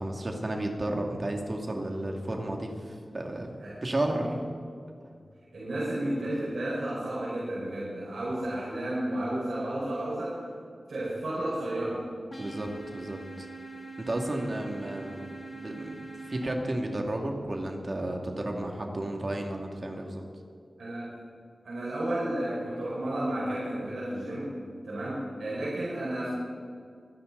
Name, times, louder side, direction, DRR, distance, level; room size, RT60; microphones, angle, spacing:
voice 1, 0.0-3.5 3.8-4.4 12.4-13.5 14.0-20.2, right 1 dB, 50° right, 2 dB, 2.5 m, -33 dB
voice 2, 5.5-10.4 10.9-12.1 15.1-15.2 20.8-21.1 21.6-24.5 24.8-26.3, right 1 dB, 85° right, -9 dB, 4.8 m, -32 dB
sound 1, 12.3-16.4, right 3 dB, 35° left, 2.5 m, -43 dB
25.5 x 10.5 x 4.1 m, 2.2 s
cardioid pair, 45°, 0 cm